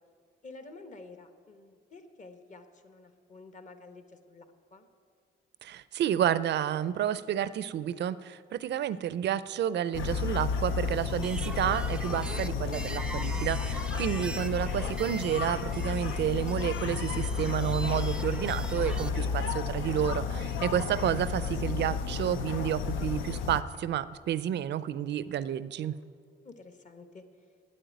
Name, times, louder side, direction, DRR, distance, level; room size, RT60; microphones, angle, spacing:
voice 1, 0.4-4.9 16.1-16.4 26.4-27.2, left 3 dB, 40° left, 8 dB, 1.2 m, -50 dB
voice 2, 5.6-25.9, right 10 dB, 60° right, 16 dB, 0.5 m, -30 dB
sound 1, 9.9-23.6, left 6 dB, 80° left, 0.6 m, -32 dB
sound 2, 11.1-19.1, right 2 dB, 5° right, 0.5 m, -42 dB
sound 3, 16.9-22.0 22.2-26.0, equal, 60° left, 3.6 m, -56 dB
8.7 x 8.7 x 9.3 m, 2.1 s
cardioid pair, 90°, 20 cm